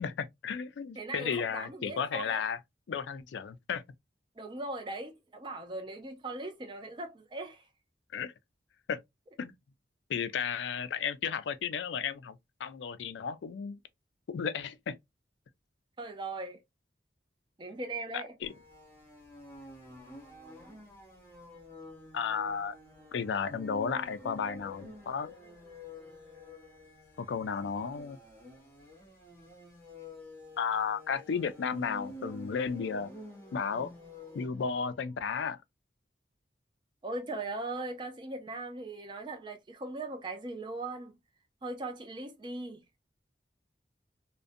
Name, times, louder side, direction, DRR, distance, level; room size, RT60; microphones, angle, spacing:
voice 1, 0.0-2.6 2.9-3.8 8.1-8.3 8.9-9.0 9.4-9.5 10.1-13.8 14.3-15.0 18.1-18.5 22.1-22.7 23.1-25.3 27.2-28.2 30.6-33.1 33.5-33.9 34.3-35.6, left 6 dB, 85° left, 0.3 m, -33 dB
voice 2, 1.0-2.4 4.4-7.6 16.0-16.6 17.6-18.3 37.0-41.1 41.6-42.8, right 2 dB, 25° right, 0.4 m, -39 dB
sound 1, 18.4-35.0, left 1 dB, 10° left, 0.8 m, -49 dB
2.5 x 2.1 x 2.5 m
head